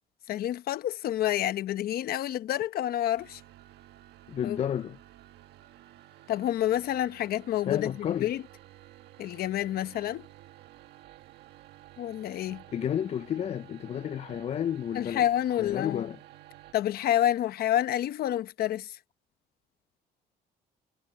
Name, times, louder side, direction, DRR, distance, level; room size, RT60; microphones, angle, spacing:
voice 1, 0.3-3.4 4.4-4.6 6.3-8.4 9.2-10.3 12.0-12.6 14.9-16.1 16.7-19.0, left 12 dB, 65° left, 1.0 m, -28 dB
sound 1, 3.2-16.7, right 14 dB, 80° right, 1.7 m, -52 dB
voice 2, 4.3-5.0 7.7-8.3 12.7-15.2 15.6-16.2, left 9 dB, 40° left, 0.5 m, -31 dB
cardioid pair, 110°, 17 cm